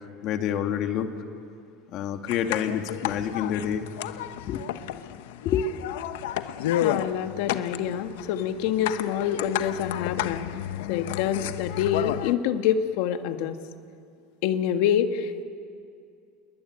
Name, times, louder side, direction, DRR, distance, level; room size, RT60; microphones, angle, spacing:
voice 1, 0.2-1.1 1.9-3.9 4.5-4.6 5.4-5.6, left 9 dB, 50° left, 5 dB, 2.3 m, -27 dB
sound 1, 2.3-12.3, left 12 dB, 85° left, 1.0 m, -32 dB
voice 2, 6.6-10.5 10.9-13.6 14.4-15.4, left 9 dB, 70° left, 7 dB, 1.8 m, -26 dB
29.5 x 21.5 x 9.3 m, 2.4 s
supercardioid pair, 135°, 0 cm